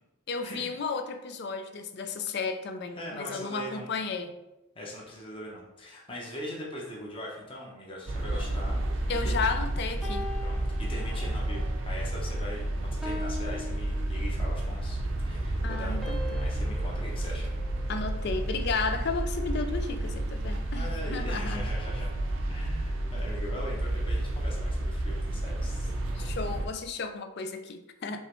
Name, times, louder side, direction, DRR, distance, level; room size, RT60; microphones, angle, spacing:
voice 1, 0.3-4.3 9.1-10.3 15.6-16.2 17.9-21.6 26.2-28.2, left 4 dB, 55° left, 7 dB, 0.4 m, -33 dB
voice 2, 3.0-3.9 4.7-9.6 10.4-17.5 20.7-22.1 22.4-25.9, left 1 dB, 25° left, -3 dB, 0.9 m, -41 dB
sound 1, 8.1-26.7, right 1 dB, 70° right, 0.6 m, -31 dB
sound 2, 10.0-11.6 12.0-12.3 13.0-14.7 16.0-18.4, left 1 dB, ahead, 0.6 m, -42 dB
5.4 x 3.0 x 3.1 m, 0.93 s
head